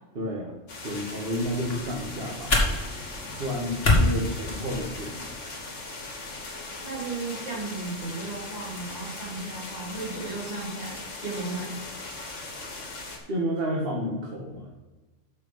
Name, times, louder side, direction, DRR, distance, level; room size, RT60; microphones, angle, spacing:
voice 1, 0.1-0.6 0.8-2.5 3.4-5.2 13.3-14.7, equal, 50° right, -2 dB, 1.6 m, -31 dB
sound 1, 0.7-13.2, left 3 dB, 75° left, 2.0 m, -39 dB
sound 2, 1.4-5.3, left 2 dB, 50° left, 2.2 m, -27 dB
voice 2, 6.8-11.8, right 3 dB, 35° right, -4 dB, 2.9 m, -35 dB
6.7 x 6.1 x 7.0 m, 1.2 s
omnidirectional pair, 1.3 m